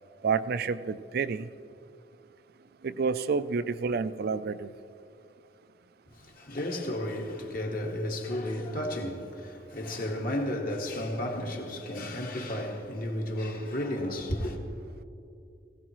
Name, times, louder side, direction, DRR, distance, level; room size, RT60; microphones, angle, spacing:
voice 1, 0.2-1.5 2.8-4.7, right 5 dB, 55° right, 0.4 m, -29 dB
voice 2, 6.1-14.6, left 1 dB, 55° left, 1.6 m, -33 dB
19.5 x 16.5 x 3.1 m
head